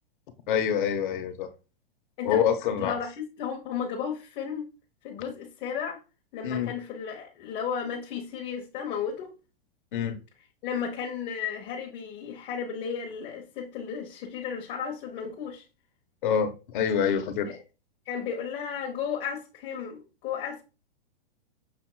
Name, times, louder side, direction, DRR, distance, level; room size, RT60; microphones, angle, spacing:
voice 1, 0.5-1.5 2.2-3.0 6.4-6.7 9.9-10.2 16.2-17.5, left 8 dB, 55° left, 1.0 m, -26 dB
voice 2, 2.8-4.7 5.0-6.0 6.3-9.3 10.6-15.6 17.5-17.6 18.1-20.6, left 7 dB, 30° left, 1.1 m, -34 dB
6.7 x 2.9 x 2.2 m
hypercardioid pair, 140°, 30 cm